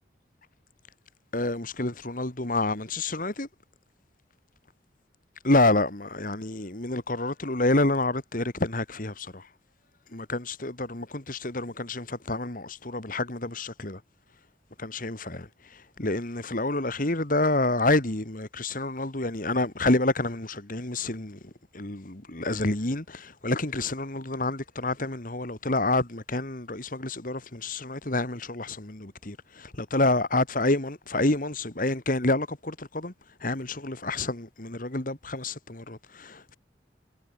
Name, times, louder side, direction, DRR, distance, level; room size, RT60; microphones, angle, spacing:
voice 1, 1.3-3.5 5.4-9.5 10.1-14.0 14.8-33.1 33.4-36.5, left 2 dB, 50° left, 2.4 m, -28 dB
head